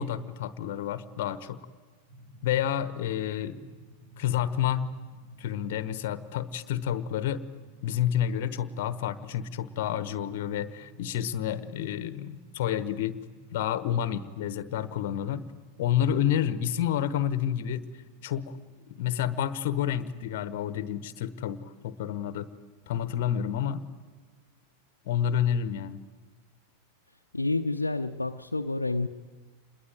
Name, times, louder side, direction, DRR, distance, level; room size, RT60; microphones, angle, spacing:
voice 1, 0.0-1.6 2.4-3.6 4.2-4.9 5.4-7.4 7.8-13.2 13.5-15.4 15.8-17.8 18.2-18.6 18.9-22.5 22.9-23.8 25.0-26.0, left 10 dB, 50° left, 15 dB, 1.2 m, -29 dB
sound 1, 2.1-19.7, equal, 65° right, 3.5 m, -54 dB
voice 2, 27.3-29.1, left 2 dB, 80° left, 3 dB, 0.7 m, -29 dB
27.0 x 21.5 x 9.2 m, 1.5 s
figure-of-eight pair, 90°, 0 cm